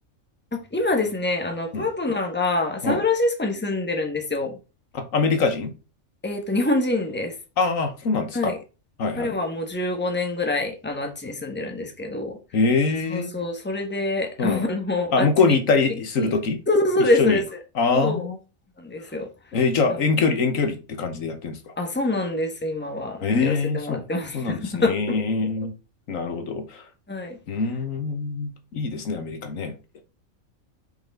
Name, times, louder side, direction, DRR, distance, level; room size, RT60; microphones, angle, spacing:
voice 1, 0.5-4.6 6.2-7.3 8.3-8.6 9.2-12.4 13.1-15.6 15.9-16.3 16.7-17.4 17.9-18.2 18.8-19.3 19.9-20.3 21.8-25.2 27.1-27.4, left 2 dB, 10° left, 1.3 m, -26 dB
voice 2, 4.9-5.7 7.6-8.5 9.0-9.3 12.5-13.3 14.4-14.6 15.1-16.6 17.2-17.4 17.8-18.4 19.5-21.6 23.2-24.0 24.3-25.7 26.1-26.8 27.5-28.5 28.7-29.7, left 4 dB, 75° left, 1.5 m, -23 dB
5.6 x 5.6 x 3.6 m
omnidirectional pair, 1.4 m